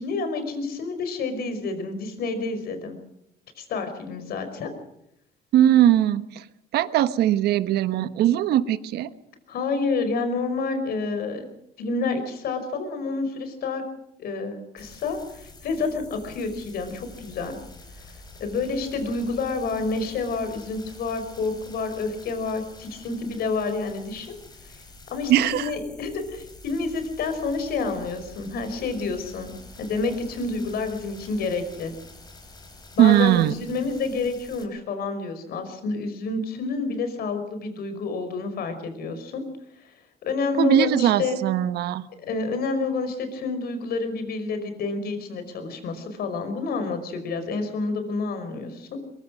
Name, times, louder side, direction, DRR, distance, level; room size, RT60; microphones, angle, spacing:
voice 1, 0.0-3.0 3.6-4.7 9.5-11.5 11.8-13.8 14.2-17.6 18.0-24.3 24.6-24.8 25.1-31.9 33.0-39.4 39.8-41.4 42.2-49.0, left 3 dB, 65° left, 8 dB, 5.3 m, -29 dB
voice 2, 5.5-6.4 6.7-9.1 25.3-25.7 33.0-33.5 40.6-42.1, right 12 dB, 75° right, 13 dB, 1.2 m, -20 dB
sound 1, 14.8-34.6, left 2 dB, 25° left, 5.1 m, -47 dB
23.0 x 22.0 x 6.4 m, 0.79 s
cardioid pair, 110°, 17 cm